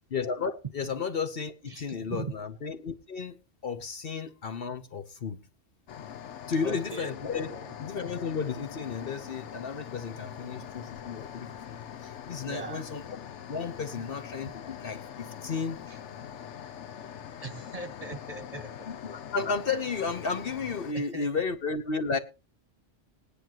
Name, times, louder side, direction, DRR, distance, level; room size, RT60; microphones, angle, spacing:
voice 1, 0.1-3.4 3.6-5.4 6.5-13.2 13.5-15.8 18.9-22.2, left 5 dB, 50° left, 1.0 m, -33 dB
voice 2, 1.6-2.3 6.6-7.7 12.4-12.8 15.9-16.0 17.4-18.7 20.9-21.5, right 3 dB, 35° right, 1.0 m, -40 dB
sound 1, 5.9-20.9, left 9 dB, 70° left, 1.1 m, -43 dB
19.5 x 9.8 x 3.0 m
omnidirectional pair, 1.3 m